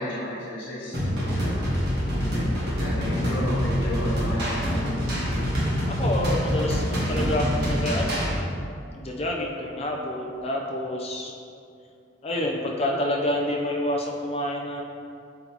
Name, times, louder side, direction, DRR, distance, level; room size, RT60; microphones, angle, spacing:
voice 1, 0.0-1.6 2.3-4.7 5.0-5.2, left 1 dB, 80° left, -7 dB, 1.4 m, -33 dB
sound 1, 0.9-8.3, equal, 55° right, 1.5 m, -25 dB
voice 2, 5.9-8.2 8.9-11.3 12.2-14.8, left 1 dB, 30° left, -1 dB, 0.6 m, -28 dB
7.6 x 4.1 x 3.0 m, 2.5 s
head